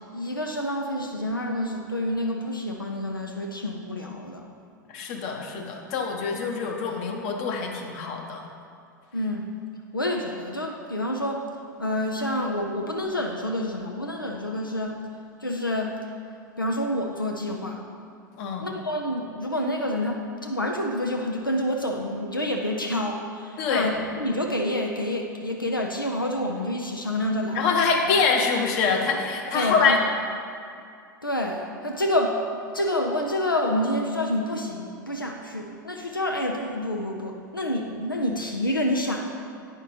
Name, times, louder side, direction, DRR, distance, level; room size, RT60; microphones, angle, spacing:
voice 1, 0.1-4.5 9.1-9.5 9.9-11.4 11.8-15.0 15.4-15.9 16.6-17.8 18.6-27.8 29.5-30.0 31.2-32.4 32.7-39.4, left 1 dB, 90° left, 1 dB, 0.5 m, -28 dB
voice 2, 4.9-8.4 18.4-18.7 23.6-23.9 27.5-30.0, left 5 dB, 45° left, 2 dB, 0.9 m, -25 dB
9.1 x 5.7 x 3.3 m, 2.4 s
figure-of-eight pair, 90°, 11 cm